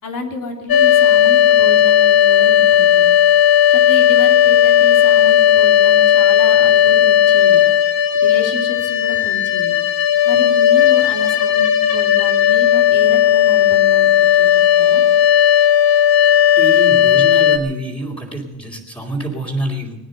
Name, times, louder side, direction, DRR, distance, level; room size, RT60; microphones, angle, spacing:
voice 1, 0.0-3.1 3.7-7.6 8.1-9.7 10.2-14.1 14.4-14.5 14.8-15.0, left 2 dB, 60° left, 2 dB, 3.2 m, -30 dB
sound 1, 0.7-17.6, left 10 dB, 80° left, 1.4 m, -13 dB
voice 2, 16.6-20.0, right 1 dB, 15° left, -3 dB, 3.3 m, -26 dB
20.0 x 9.7 x 6.7 m, 1.0 s
cardioid pair, 95°, 37 cm